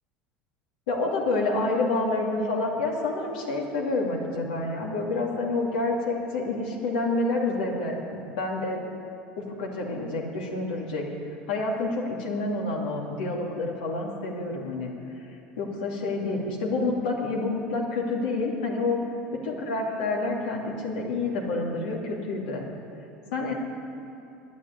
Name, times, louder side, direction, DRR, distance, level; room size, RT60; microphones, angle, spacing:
voice 1, 0.9-8.8 9.4-11.0 11.5-14.9 15.6-19.0 19.4-22.7 23.3-23.5, left 2 dB, 80° left, -1 dB, 2.5 m, -28 dB
10.5 x 10.0 x 9.4 m, 3.0 s
hypercardioid pair, 85°, 5 cm